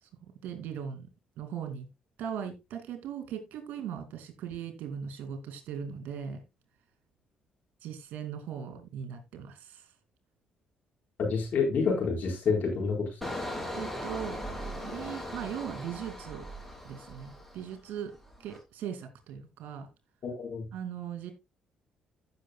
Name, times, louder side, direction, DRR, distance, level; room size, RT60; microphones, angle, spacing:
voice 1, 0.4-1.1 1.4-1.9 2.2-6.4 7.8-9.9 13.8-14.4 14.8-16.5 16.8-18.1 18.4-19.9 20.7-21.3, right 8 dB, 65° right, 2.6 m, -39 dB
voice 2, 11.2-13.4 20.2-20.7, left 5 dB, 60° left, 4.7 m, -28 dB
Engine, 13.2-17.9 18.2-18.6, equal, 5° left, 5.6 m, -39 dB
15.0 x 6.4 x 2.4 m
hypercardioid pair, 50°, 3 cm